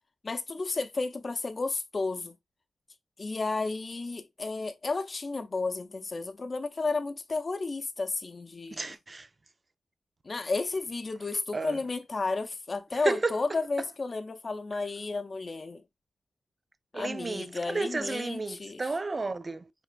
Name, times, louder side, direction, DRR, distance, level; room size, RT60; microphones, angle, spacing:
voice 1, 0.2-2.4 3.2-8.8 10.2-15.8 16.9-18.8, left 3 dB, 45° left, 0.6 m, -32 dB
voice 2, 8.7-9.3 11.5-11.8 12.9-13.6 16.9-19.7, right 3 dB, 35° right, 0.5 m, -32 dB
4.9 x 3.4 x 2.3 m
cardioid pair, 70°, 0 cm